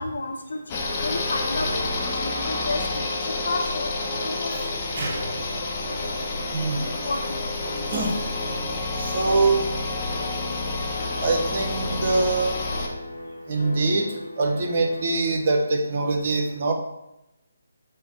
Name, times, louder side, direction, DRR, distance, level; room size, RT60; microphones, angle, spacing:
voice 1, 0.0-4.6 7.0-7.6, left 2 dB, 65° left, 2 dB, 0.8 m, -32 dB
sound 1, 0.7-12.9, left 2 dB, 25° left, 0.7 m, -29 dB
sound 2, 1.5-15.3, left 1 dB, 85° left, 1.1 m, -39 dB
voice 2, 5.0-5.3 6.5-6.9 7.9-8.2 9.0-9.7 11.2-12.6 13.5-16.7, right 3 dB, 40° right, 3 dB, 0.8 m, -24 dB
5.6 x 2.1 x 3.9 m, 0.90 s
figure-of-eight pair, 145°, 0 cm